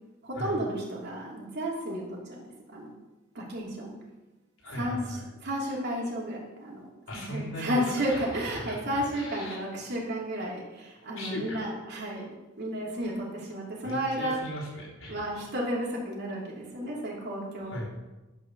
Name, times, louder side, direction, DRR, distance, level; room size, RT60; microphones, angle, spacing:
voice 1, 0.2-2.4 2.7-2.9 3.3-3.9 4.7-12.3 12.6-14.4 15.1-17.8, equal, 55° right, -3 dB, 3.0 m, -32 dB
voice 2, 4.6-5.3 7.1-9.6 11.2-11.6 13.8-15.3 17.6-17.9, equal, 85° left, -4 dB, 3.4 m, -38 dB
11.5 x 5.6 x 6.6 m, 1.1 s
head